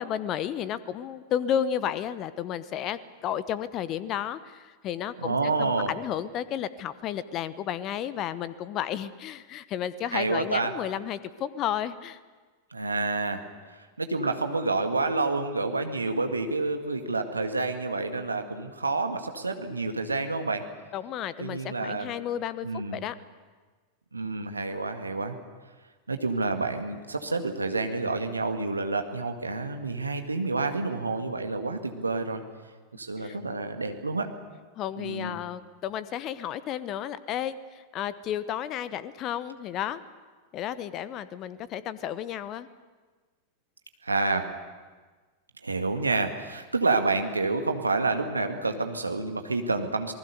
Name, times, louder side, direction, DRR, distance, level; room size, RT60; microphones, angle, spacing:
voice 1, 0.0-12.2 20.9-23.1 33.2-33.4 34.7-40.0 40.5-42.7, left 10 dB, 35° left, 16 dB, 1.0 m, -32 dB
voice 2, 5.2-5.9 10.1-10.8 12.7-13.4 13.7-20.7 21.4-22.1 22.6-23.0 24.1-25.4 26.1-32.4 32.9-34.3 35.0-35.4 44.0-44.5 45.6-50.1, right 3 dB, 80° right, 5 dB, 1.9 m, -28 dB
27.5 x 19.5 x 6.8 m, 1.4 s
figure-of-eight pair, 90°, 0 cm